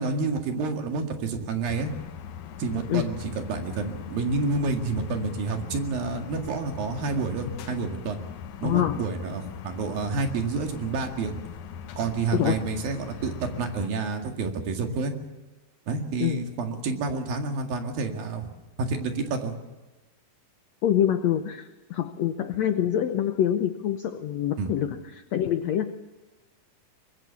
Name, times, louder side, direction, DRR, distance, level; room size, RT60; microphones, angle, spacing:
voice 1, 0.0-1.9 2.6-8.2 8.6-11.3 12.0-15.1 15.9-18.5 18.8-19.5 24.6-24.7, right 4 dB, 70° right, 4 dB, 3.8 m, -29 dB
sound 1, 1.6-13.9, left 8 dB, 65° left, 2.2 m, -40 dB
voice 2, 8.6-9.0 12.3-12.6 16.2-16.4 20.8-25.0 25.3-25.9, left 10 dB, 80° left, 9 dB, 1.5 m, -25 dB
24.0 x 21.5 x 7.1 m, 1.1 s
omnidirectional pair, 4.3 m